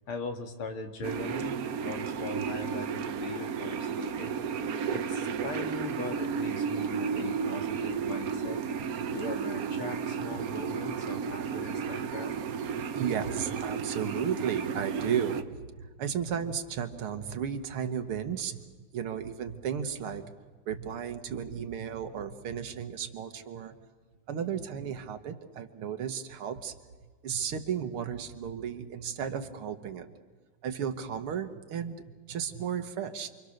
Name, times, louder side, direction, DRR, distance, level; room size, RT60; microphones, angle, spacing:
voice 1, 0.1-4.5 4.9-8.6 9.1-12.4, left 3 dB, 75° left, 5 dB, 2.8 m, -40 dB
sound 1, 1.0-15.4, right 6 dB, 55° right, 1.0 m, -33 dB
voice 2, 12.8-18.6 18.9-20.3 20.7-23.7 24.3-26.7 27.2-30.1 30.6-33.3, right 8 dB, 75° right, 8 dB, 2.2 m, -34 dB
28.5 x 24.0 x 6.6 m, 1.4 s
omnidirectional pair, 2.4 m